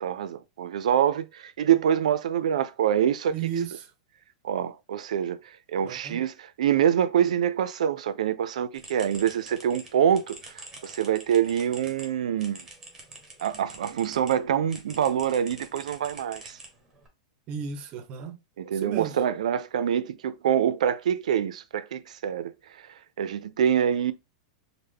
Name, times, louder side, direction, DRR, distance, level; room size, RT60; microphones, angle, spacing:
voice 1, 0.0-3.4 4.4-5.4 5.7-10.4 10.8-12.7 13.4-16.6 18.6-22.5 23.2-24.1, right 9 dB, 85° right, 0.4 m, -25 dB
voice 2, 3.3-3.7 5.8-6.2 17.5-18.4 18.8-19.2, right 7 dB, 30° right, 0.5 m, -33 dB
sound 1, 8.7-14.4 14.7-17.1, right 2 dB, 10° right, 0.8 m, -46 dB
3.3 x 2.0 x 3.4 m
supercardioid pair, 155°, 4 cm